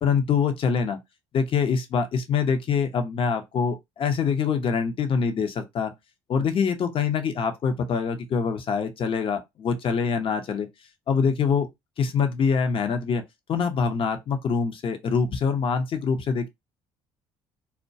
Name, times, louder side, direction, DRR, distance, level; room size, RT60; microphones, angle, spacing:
voice 1, 0.0-1.0 1.3-5.9 6.3-10.7 11.1-11.7 12.0-13.2 13.5-16.5, left 6 dB, 50° left, 0.6 m, -24 dB
2.2 x 2.1 x 2.6 m
supercardioid pair, 75°, 12 cm